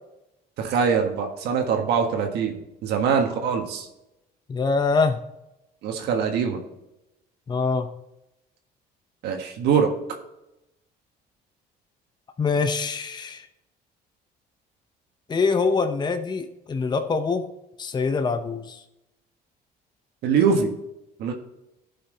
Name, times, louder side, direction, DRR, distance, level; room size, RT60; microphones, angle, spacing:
voice 1, 0.6-2.5 2.8-3.9 5.8-6.6 9.2-9.9 20.2-20.7 21.2-21.3, right 6 dB, 75° right, 3 dB, 1.5 m, -23 dB
voice 2, 4.5-5.2 7.5-7.9 12.4-13.5 15.3-17.4 17.8-18.8, left 4 dB, 25° left, 8 dB, 0.8 m, -24 dB
12.0 x 5.7 x 4.0 m, 0.88 s
cardioid pair, 110°, 17 cm